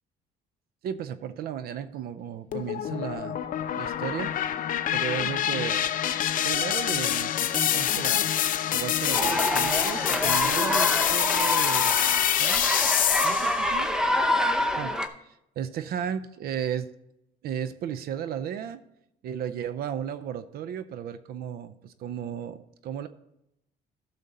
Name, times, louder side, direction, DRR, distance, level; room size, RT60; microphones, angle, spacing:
voice 1, 0.8-3.4 3.7-4.3 4.9-5.9 6.4-8.3 8.7-12.0 12.4-13.9 14.8-16.9 17.4-18.8 19.2-23.1, right 9 dB, 65° right, 13 dB, 0.6 m, -35 dB
sound 1, 2.5-13.6, left 11 dB, 55° left, 0.6 m, -26 dB
sound 2, 9.1-15.1, left 1 dB, 5° right, 0.8 m, -26 dB
12.0 x 6.6 x 4.1 m, 0.83 s
cardioid pair, 110°, 17 cm